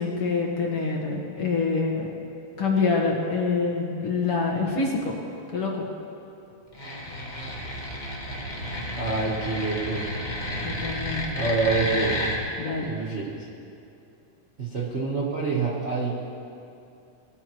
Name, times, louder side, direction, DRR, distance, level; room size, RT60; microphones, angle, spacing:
voice 1, 0.0-2.1 2.6-5.1 5.5-5.7 10.6-11.4 12.6-12.9, left 4 dB, 55° left, -2 dB, 2.1 m, -26 dB
sound 1, 6.7-12.4, left 1 dB, 25° left, 1.0 m, -31 dB
voice 2, 9.0-10.1 11.3-12.2 12.8-13.5 14.6-16.2, right 4 dB, 50° right, -5 dB, 0.8 m, -27 dB
20.5 x 13.5 x 3.1 m, 2.7 s
omnidirectional pair, 3.5 m